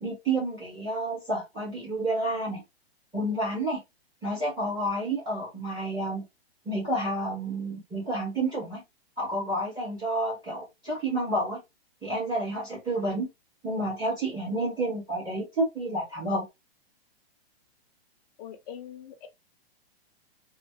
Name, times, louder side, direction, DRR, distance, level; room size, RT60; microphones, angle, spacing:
voice 1, 0.0-2.6 3.1-3.8 4.2-6.2 6.6-8.8 9.2-11.6 12.0-13.3 13.6-16.4, right 1 dB, 15° right, 1.3 m, -30 dB
voice 2, 18.4-19.3, left 9 dB, 40° left, 0.7 m, -42 dB
3.1 x 2.1 x 2.8 m
hypercardioid pair, 135°, 31 cm